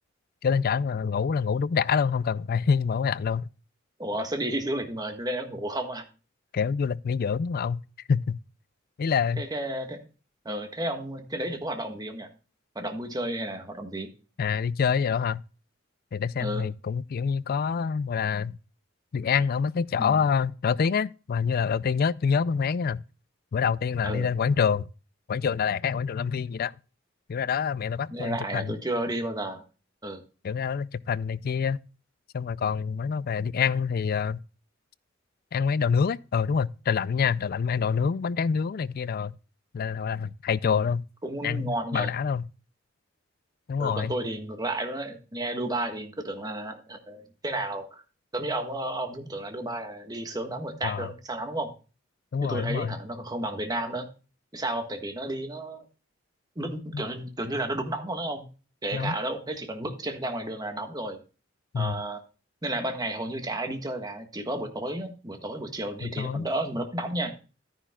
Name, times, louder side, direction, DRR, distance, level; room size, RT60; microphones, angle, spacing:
voice 1, 0.4-3.5 6.5-7.8 8.1-8.4 9.0-9.4 14.4-15.4 16.1-18.6 19.1-23.0 23.5-24.9 25.3-26.7 27.3-28.7 30.4-31.8 32.3-34.4 35.5-39.3 39.7-41.0 41.4-42.5 43.7-44.1 50.8-51.1 52.3-52.9 56.9-57.0 58.9-59.2 61.7-62.0 66.0-66.5, left 6 dB, 50° left, 0.4 m, -26 dB
voice 2, 4.0-6.0 9.4-10.0 10.4-12.3 12.7-14.1 16.4-16.6 20.0-20.2 24.0-24.3 28.1-29.6 30.0-30.2 40.6-40.8 41.2-42.1 43.8-48.0 48.3-51.7 52.4-54.1 54.5-55.8 56.5-58.5 58.8-61.2 61.7-62.2 62.6-67.3, right 1 dB, 20° right, 1.5 m, -32 dB
12.5 x 10.0 x 2.3 m
head